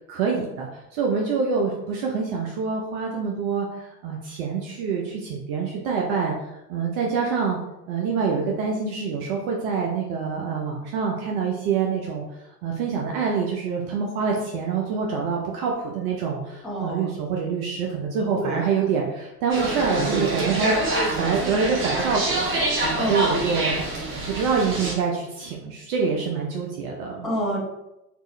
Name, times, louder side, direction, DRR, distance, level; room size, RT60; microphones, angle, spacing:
voice 1, 0.0-7.6 7.9-12.2 12.6-23.9 24.3-27.3, right 5 dB, 55° right, -1 dB, 0.7 m, -26 dB
voice 2, 16.6-17.0 18.3-18.6 23.0-23.4 27.2-27.6, equal, ahead, -6 dB, 0.9 m, -27 dB
sound 1, 19.5-24.9, right 2 dB, 25° right, 1.0 m, -26 dB
3.4 x 2.5 x 3.2 m, 0.89 s
hypercardioid pair, 90°, 49 cm